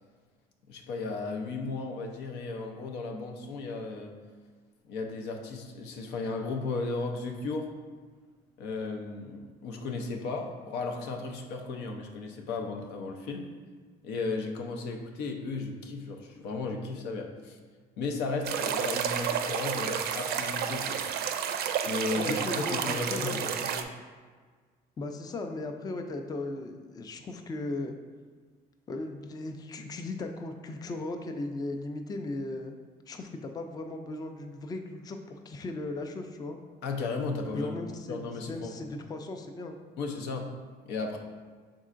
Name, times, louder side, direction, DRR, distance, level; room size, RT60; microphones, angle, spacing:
voice 1, 0.7-4.1 4.8-7.7 8.6-13.5 14.0-17.6 18.0-21.0 21.8-23.9 36.8-37.7 38.1-38.9 40.0-40.5 40.8-41.2, left 3 dB, 90° left, 3 dB, 0.6 m, -35 dB
sound 1, 18.4-23.8, right 8 dB, 65° right, 0.4 m, -31 dB
voice 2, 22.1-23.7 25.0-28.0 28.9-32.7 33.1-36.6 37.5-38.2 38.4-39.7, left 2 dB, 25° left, 5 dB, 0.4 m, -37 dB
5.3 x 3.7 x 2.5 m, 1.5 s
cardioid pair, 110°, 17 cm